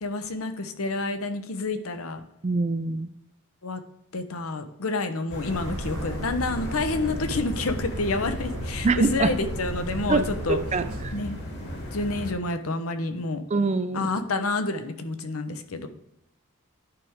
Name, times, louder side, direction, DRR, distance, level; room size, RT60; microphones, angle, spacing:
voice 1, 0.0-2.2 3.6-3.8 4.1-10.6 11.1-11.4 11.9-13.4 13.9-15.9, left 3 dB, 85° left, 8 dB, 0.8 m, -29 dB
voice 2, 2.4-3.1 8.8-9.3 10.1-10.2 10.7-11.1 13.5-14.1, right 3 dB, 30° right, 11 dB, 0.4 m, -24 dB
sound 1, 5.3-12.3, left 1 dB, 55° left, 1.9 m, -35 dB
Aircraft, 5.5-11.1, right 2 dB, 85° right, 0.8 m, -36 dB
10.5 x 4.7 x 3.6 m, 0.84 s
head